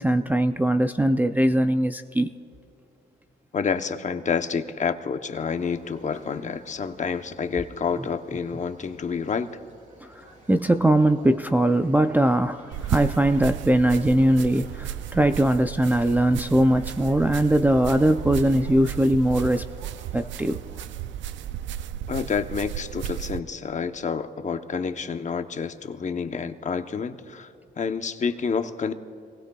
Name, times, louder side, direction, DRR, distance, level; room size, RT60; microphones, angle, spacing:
voice 1, 0.0-2.3 10.0-19.7 20.1-20.6, right 1 dB, 10° right, 6 dB, 0.4 m, -21 dB
voice 2, 3.5-9.5 22.1-27.5 27.8-28.9, left 6 dB, 35° left, 8 dB, 0.9 m, -28 dB
sound 1, 5.5-20.8, right 1 dB, 40° right, 3.4 m, -51 dB
sound 2, 12.7-23.4, right 11 dB, 70° right, 0.4 m, -33 dB
25.5 x 19.5 x 2.3 m, 2.6 s
cardioid pair, 90°, 20 cm